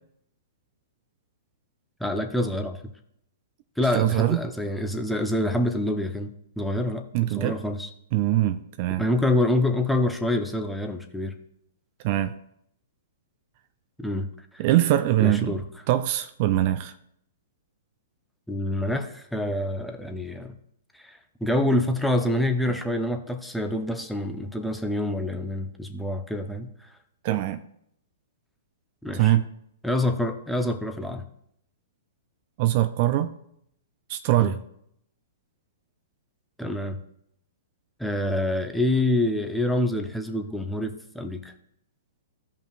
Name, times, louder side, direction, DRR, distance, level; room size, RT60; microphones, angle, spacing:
voice 1, 2.0-2.8 3.8-6.3 6.6-7.9 9.0-11.3 14.0-14.3 14.5-14.6 15.2-15.6 18.5-20.5 21.0-26.7 29.0-29.3 29.8-31.2 34.4-34.5 36.6-37.0 38.0-41.5, left 1 dB, ahead, 0.9 m, -26 dB
voice 2, 3.9-4.4 7.1-7.6 8.1-9.0 12.0-12.4 14.6-15.6 15.9-16.9 27.2-27.6 29.1-29.5 32.6-33.3 34.1-34.6, right 14 dB, 45° right, 0.5 m, -23 dB
15.5 x 5.3 x 2.5 m
hypercardioid pair, 120°, 0 cm